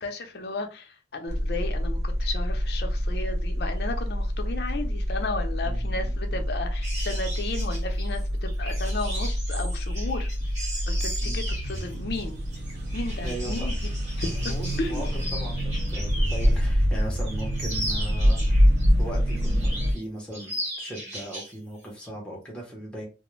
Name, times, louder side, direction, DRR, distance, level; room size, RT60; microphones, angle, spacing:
voice 1, 0.0-10.3 10.9-12.4 12.9-15.1, left 2 dB, 65° left, 0.5 m, -34 dB
sound 1, 1.3-19.9, equal, 65° right, 0.5 m, -26 dB
voice 2, 5.6-6.5 11.2-11.5 13.2-13.7 14.2-18.7 19.0-23.1, right 1 dB, 5° left, 0.8 m, -38 dB
sound 2, 6.8-16.6 17.0-18.9 19.3-20.0 20.3-21.5 21.8-22.1, equal, 40° right, 1.3 m, -37 dB
2.4 x 2.1 x 3.0 m
head